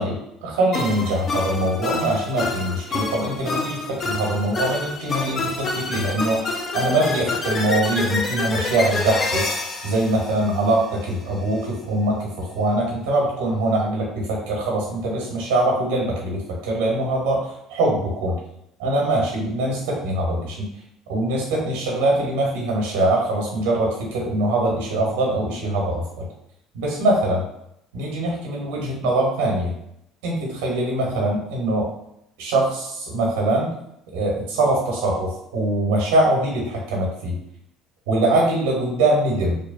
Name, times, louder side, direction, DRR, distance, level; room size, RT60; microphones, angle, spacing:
voice 1, 0.0-9.5 9.8-18.4 18.8-20.7 21.1-26.3 26.7-27.4 27.9-29.7 30.2-31.9 32.4-33.7 34.1-37.4 38.1-39.6, right 1 dB, 80° right, -2 dB, 0.8 m, -23 dB
sound 1, 0.7-11.1, left 3 dB, 45° left, 0.4 m, -28 dB
2.7 x 2.2 x 2.4 m, 0.78 s
hypercardioid pair, 70°, 0 cm